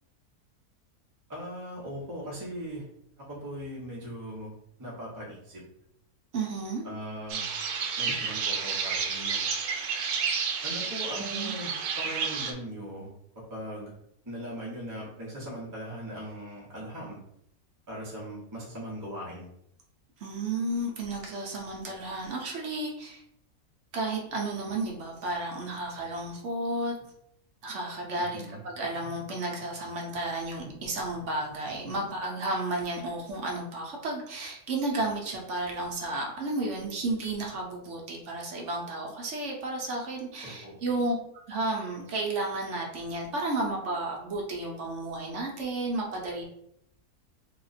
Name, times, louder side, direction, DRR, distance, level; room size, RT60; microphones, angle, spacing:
voice 1, 1.3-2.9 3.3-4.5 4.8-5.6 6.8-7.5 8.0-9.5 10.6-14.0 14.3-17.2 17.9-19.5 28.2-28.6 40.4-40.8, equal, 15° right, -6 dB, 0.8 m, -39 dB
voice 2, 6.3-6.8 11.2-11.5 20.2-23.2 23.9-26.9 27.6-41.1 41.5-46.4, right 2 dB, 60° right, -1 dB, 0.9 m, -32 dB
sound 1, 7.3-12.5, right 5 dB, 90° right, 1.1 m, -30 dB
2.9 x 2.4 x 4.0 m, 0.75 s
omnidirectional pair, 1.6 m